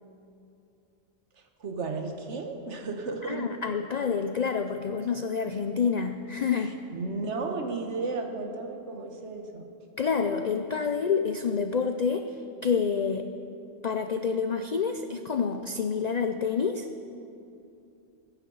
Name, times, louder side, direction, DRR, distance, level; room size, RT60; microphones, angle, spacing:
voice 1, 1.6-3.5 6.5-6.6 6.9-9.6, right 3 dB, 65° right, 4 dB, 1.4 m, -33 dB
voice 2, 3.2-6.7 10.0-12.4 12.6-13.3 13.8-16.9, left 6 dB, 80° left, 7 dB, 0.3 m, -28 dB
21.0 x 9.7 x 3.9 m, 2.7 s
omnidirectional pair, 1.3 m